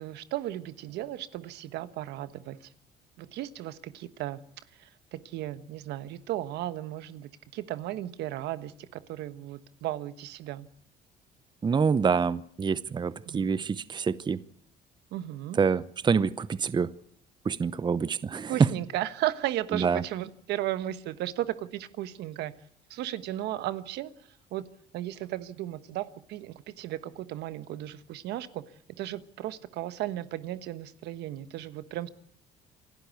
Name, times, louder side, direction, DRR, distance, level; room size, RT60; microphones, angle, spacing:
voice 1, 0.0-2.6 3.2-4.4 4.8-10.7 13.3-13.5 15.1-15.6 18.5-22.5 22.9-24.1 24.5-24.7 24.9-28.6 29.0-32.1, right 14 dB, 80° right, 1.3 m, -35 dB
voice 2, 11.6-14.4 15.6-16.9 17.4-18.7 19.7-20.0, right 5 dB, 25° right, 0.8 m, -26 dB
27.5 x 12.0 x 8.3 m
cardioid pair, 110°, 17 cm